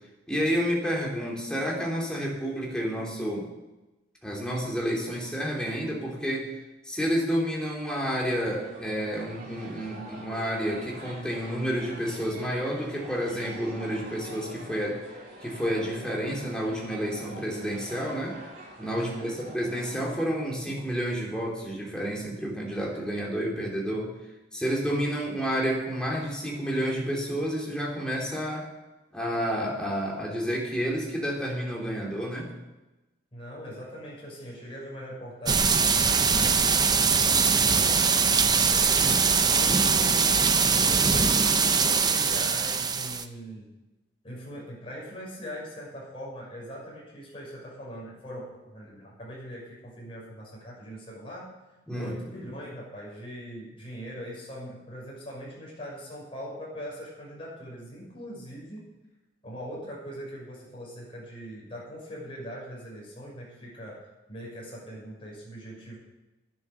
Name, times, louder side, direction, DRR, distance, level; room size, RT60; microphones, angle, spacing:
voice 1, 0.3-3.5 4.2-6.5 6.8-15.0 15.4-18.4 18.8-24.1 24.5-28.6 29.1-32.5 51.9-52.1, equal, 5° left, -3 dB, 3.0 m, -30 dB
sound 1, 8.5-20.0, right 1 dB, 45° right, 3.1 m, -45 dB
voice 2, 18.9-19.4 33.3-38.2 38.7-43.7 44.2-51.5 51.9-58.9 59.4-64.0 64.3-66.0, equal, 30° left, -4 dB, 6.0 m, -41 dB
sound 2, 35.5-43.2, right 5 dB, 20° right, 0.6 m, -22 dB
10.5 x 10.5 x 6.8 m, 1.1 s
head